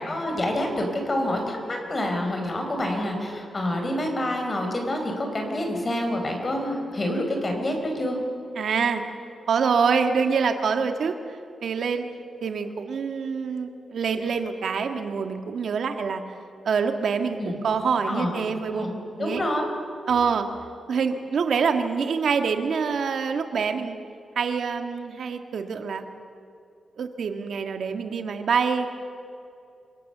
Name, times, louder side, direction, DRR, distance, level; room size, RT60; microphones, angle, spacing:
voice 1, 0.0-8.2 17.4-17.6 18.1-18.3 18.7-18.9 19.2-19.6, left 1 dB, 30° left, 2 dB, 4.5 m, -27 dB
voice 2, 8.6-9.0 9.5-12.1 12.4-16.2 16.6-18.9 19.2-19.4 20.1-20.5 20.9-24.0 24.4-26.1 27.0-29.0, right 5 dB, 70° right, 6 dB, 1.7 m, -25 dB
28.0 x 18.0 x 6.8 m, 2.5 s
wide cardioid pair, 105°, 0 cm